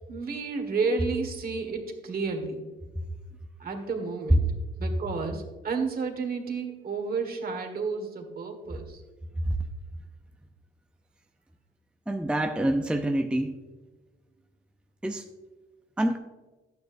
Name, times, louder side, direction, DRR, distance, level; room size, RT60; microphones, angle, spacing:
voice 1, 0.1-2.6 3.6-4.5 4.8-9.0, right 4 dB, 50° right, 4 dB, 1.7 m, -31 dB
voice 2, 12.1-13.6 15.0-15.2 16.0-16.2, right 1 dB, 5° right, 4 dB, 0.6 m, -26 dB
11.5 x 9.1 x 2.6 m, 1.2 s
cardioid pair, 90°, 20 cm